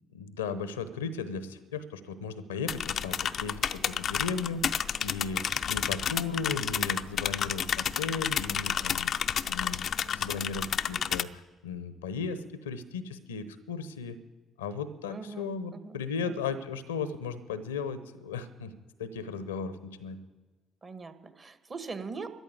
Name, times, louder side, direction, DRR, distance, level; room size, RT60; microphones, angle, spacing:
voice 1, 0.1-9.1 9.5-14.2 14.6-18.7 19.0-20.2, left 5 dB, 80° left, 14 dB, 0.8 m, -36 dB
sound 1, 2.7-11.2, left 8 dB, 55° left, 0.5 m, -31 dB
voice 2, 15.1-16.4 20.8-22.3, right 4 dB, 40° right, 10 dB, 1.5 m, -42 dB
13.5 x 10.5 x 8.5 m, 1.3 s
figure-of-eight pair, 45°, 0 cm